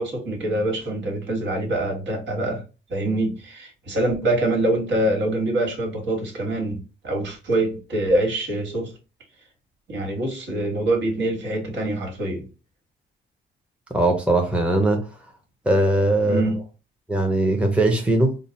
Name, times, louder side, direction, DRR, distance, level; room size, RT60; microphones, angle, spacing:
voice 1, 0.0-2.6 2.9-8.9 9.9-12.5 16.2-16.6, right 1 dB, 65° right, 1.6 m, -25 dB
voice 2, 13.9-15.1 15.7-16.4 17.1-18.4, right 1 dB, 5° right, 0.8 m, -20 dB
3.8 x 2.0 x 4.0 m
cardioid pair, 90°, 20 cm